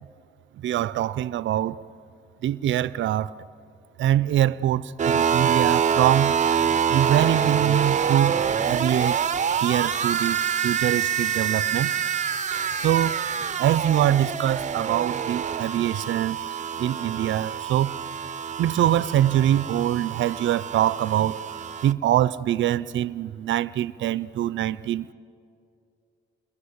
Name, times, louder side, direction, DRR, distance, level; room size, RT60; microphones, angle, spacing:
voice 1, 0.6-1.8 2.4-3.3 4.0-6.4 6.9-9.2 9.6-10.4 10.6-11.9 12.8-13.2 13.6-16.4 16.8-17.9 18.6-21.4 21.8-25.1, right 12 dB, 70° right, 0.6 m, -23 dB
sound 1, 5.0-21.9, right 7 dB, 35° right, 0.7 m, -26 dB
29.0 x 22.5 x 8.2 m
cardioid pair, 90°, 20 cm